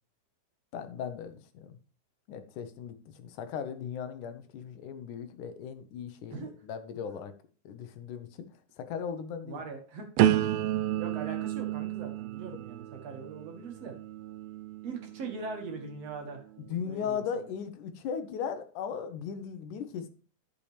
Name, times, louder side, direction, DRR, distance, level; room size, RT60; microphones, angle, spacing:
voice 1, 0.7-1.8 2.3-7.3 7.7-8.5 8.8-9.6 16.7-20.1, left 7 dB, 85° left, 9 dB, 2.5 m, -37 dB
voice 2, 9.4-10.1 11.0-13.9 14.8-16.4 16.8-17.2, right 4 dB, 60° right, 3 dB, 2.7 m, -41 dB
sound 1, 10.2-16.0 16.6-17.0, right 12 dB, 90° right, 1.5 m, -31 dB
11.5 x 6.8 x 3.3 m, 0.40 s
omnidirectional pair, 3.5 m